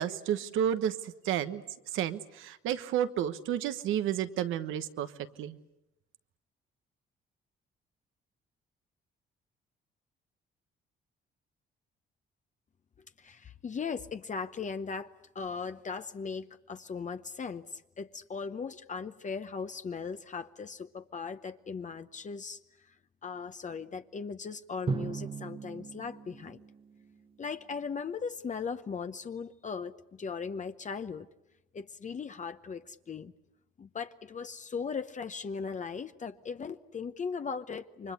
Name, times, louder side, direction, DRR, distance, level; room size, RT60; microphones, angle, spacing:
voice 1, 0.0-1.6 1.9-5.1 5.4-5.6, right 10 dB, 90° right, 11 dB, 1.3 m, -31 dB
voice 2, 13.2-22.9 23.2-26.6 27.4-31.3 31.7-33.3 33.8-38.1, left 5 dB, 40° left, 8 dB, 0.9 m, -38 dB
Drum, 24.9-27.5, right 4 dB, 25° right, 0.9 m, -38 dB
29.0 x 24.0 x 8.2 m, 0.88 s
cardioid pair, 90°, 20 cm